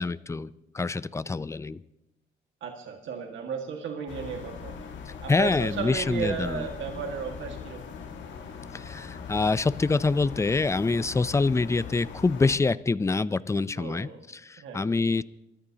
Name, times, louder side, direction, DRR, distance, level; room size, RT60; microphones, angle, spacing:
voice 1, 0.0-1.8 5.3-6.7 8.7-15.2, left 3 dB, 15° left, 17 dB, 0.5 m, -26 dB
voice 2, 2.6-4.9 5.2-7.8 13.8-14.2 14.6-14.9, right 6 dB, 75° right, 2 dB, 1.8 m, -34 dB
sound 1, 4.1-12.6, left 6 dB, 70° left, 1.6 m, -40 dB
28.5 x 13.5 x 2.9 m, 0.88 s
cardioid pair, 90°, 20 cm